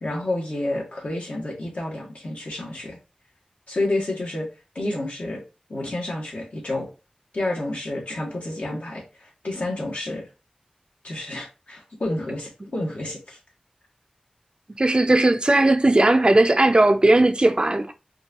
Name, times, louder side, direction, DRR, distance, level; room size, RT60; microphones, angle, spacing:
voice 1, 0.0-3.0 3.7-4.5 4.7-5.4 5.7-6.9 7.3-10.3 11.0-13.4, left 1 dB, 80° left, 1.6 m, -29 dB
voice 2, 14.8-17.9, right 2 dB, 40° right, 0.5 m, -17 dB
4.5 x 2.7 x 2.9 m
wide cardioid pair, 45°, 2 cm